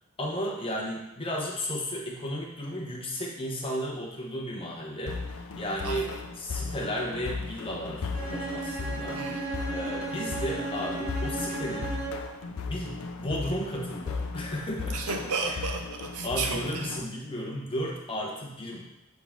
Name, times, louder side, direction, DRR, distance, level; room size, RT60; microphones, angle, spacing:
voice 1, 0.2-6.1 6.4-9.2 9.7-11.9 12.6-15.1 15.5-15.6 16.2-18.8, equal, 25° left, -2 dB, 1.1 m, -34 dB
sound 1, 5.1-17.0, left 4 dB, 65° left, 0.5 m, -36 dB
voice 2, 5.8-6.2 9.1-9.6 14.9-17.0, right 4 dB, 85° right, 4 dB, 0.7 m, -33 dB
Bowed string instrument, 8.1-12.4, right 3 dB, 25° right, 1.5 m, -35 dB
7.1 x 3.9 x 3.7 m, 0.91 s
head